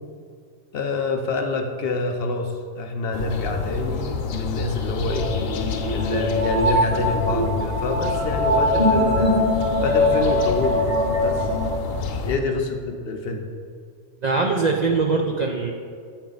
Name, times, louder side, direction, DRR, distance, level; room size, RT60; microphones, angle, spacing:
voice 1, 0.7-5.3 5.9-9.4 9.8-11.0 11.2-11.5 12.3-13.5, left 3 dB, 60° left, 4 dB, 0.7 m, -27 dB
sound 1, 3.1-12.4, left 5 dB, 90° left, 1.0 m, -29 dB
sound 2, 5.1-11.7, left 1 dB, 35° right, 2.2 m, -22 dB
voice 2, 12.0-12.3 14.2-15.7, right 4 dB, 65° right, 2 dB, 0.4 m, -22 dB
9.8 x 4.2 x 3.9 m, 2.2 s
omnidirectional pair, 1.3 m